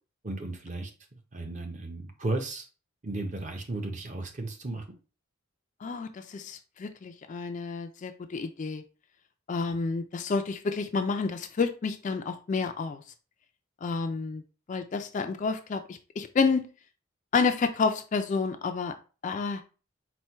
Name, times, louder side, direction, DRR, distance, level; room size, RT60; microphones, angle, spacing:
voice 1, 0.2-0.9 1.3-2.7 3.0-4.9, right 2 dB, 35° right, 0.7 m, -34 dB
voice 2, 5.8-8.8 9.5-13.0 13.8-14.4 14.7-16.6 17.3-18.9 19.2-19.6, left 4 dB, 35° left, 0.3 m, -29 dB
4.3 x 2.2 x 4.5 m
head